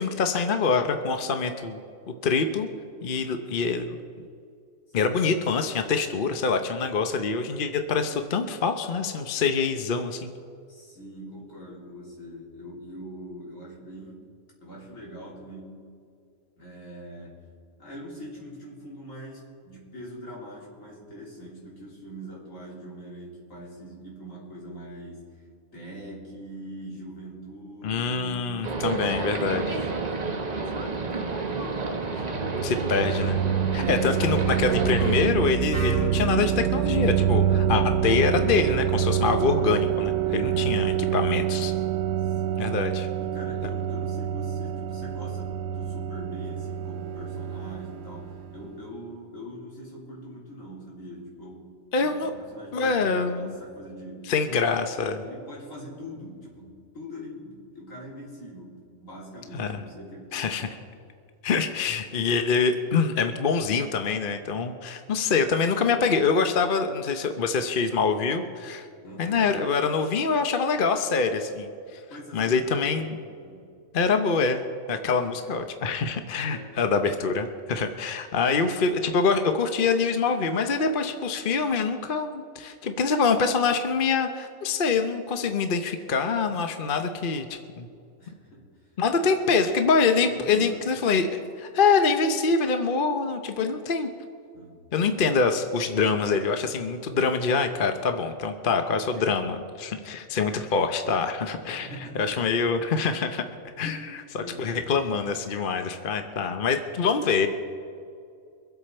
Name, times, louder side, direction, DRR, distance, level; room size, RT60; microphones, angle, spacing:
voice 1, 0.0-1.8 2.2-2.7 3.0-4.0 4.9-10.3 27.8-29.6 32.6-33.4 33.7-41.7 42.6-43.1 51.9-52.3 52.7-53.5 54.3-55.2 59.5-59.8 60.3-60.7 61.4-68.9 69.2-72.0 72.3-73.2 73.9-87.9 89.0-94.1 94.9-101.9 102.2-103.4 103.8-104.0 104.3-107.5, left 5 dB, 45° left, 7 dB, 0.9 m, -25 dB
voice 2, 4.9-5.3 10.7-14.2 14.6-15.9 16.6-17.4 17.8-25.4 25.7-32.5 33.6-33.9 40.2-40.7 42.2-42.8 43.2-54.3 55.2-60.7 69.0-69.6 72.1-73.8 76.4-76.8 88.2-89.3 90.2-91.0 94.5-94.8 99.2-99.3 101.7-102.6 103.8-105.0, equal, 75° left, -4 dB, 3.6 m, -43 dB
sound 1, 28.6-35.3, right 3 dB, 35° right, 1.0 m, -30 dB
sound 2, 32.0-48.7, right 9 dB, 70° right, 0.9 m, -26 dB
Wind instrument woodwind instrument, 35.7-39.6, equal, 5° left, 2.1 m, -40 dB
24.5 x 8.1 x 4.4 m, 2.3 s
omnidirectional pair, 1.4 m